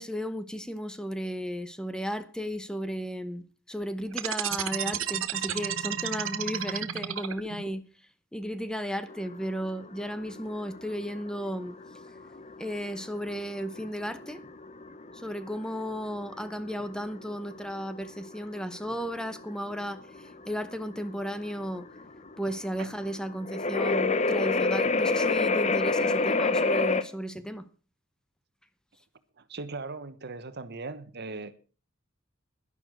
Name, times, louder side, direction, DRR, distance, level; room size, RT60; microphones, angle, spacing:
voice 1, 0.0-7.8 8.3-11.8 12.6-14.4 15.1-21.9 22.4-27.7, equal, 5° left, 0.9 m, -34 dB
sound 1, 4.1-7.7, right 9 dB, 75° right, 1.2 m, -31 dB
sound 2, 9.1-27.0, left 3 dB, 35° left, 0.9 m, -29 dB
voice 2, 29.4-31.5, right 3 dB, 55° right, 1.2 m, -39 dB
11.5 x 11.5 x 6.0 m
head